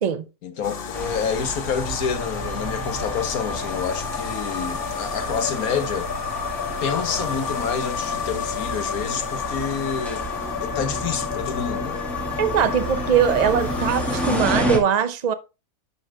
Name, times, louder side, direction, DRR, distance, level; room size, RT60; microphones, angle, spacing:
voice 1, 0.4-6.1 6.8-10.2 10.6-12.0, left 6 dB, 70° left, 1.4 m, -28 dB
sound 1, 0.6-14.4, left 7 dB, 50° left, 0.8 m, -31 dB
sound 2, 0.9-14.8, right 1 dB, ahead, 1.9 m, -31 dB
voice 2, 12.4-15.3, right 8 dB, 55° right, 0.4 m, -21 dB
11.5 x 4.3 x 3.4 m
omnidirectional pair, 1.7 m